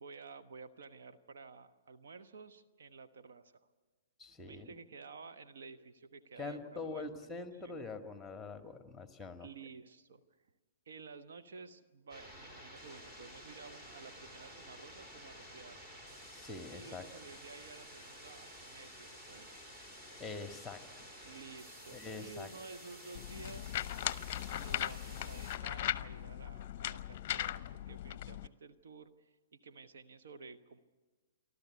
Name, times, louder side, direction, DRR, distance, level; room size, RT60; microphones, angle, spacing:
voice 1, 0.0-3.7 4.4-7.9 9.4-10.2 10.9-15.8 16.7-19.5 21.2-23.7 24.5-30.8, right 4 dB, 65° right, 8 dB, 1.1 m, -52 dB
voice 2, 4.2-4.7 6.4-9.5 16.3-17.0 20.2-21.1 21.9-22.5, left 3 dB, 10° left, 7 dB, 1.8 m, -44 dB
sound 1, 12.1-25.6, equal, 25° right, 4.7 m, -52 dB
sound 2, 23.1-28.5, left 12 dB, 45° left, 0.7 m, -38 dB
28.5 x 12.5 x 9.5 m, 1.3 s
hypercardioid pair, 125°, 0 cm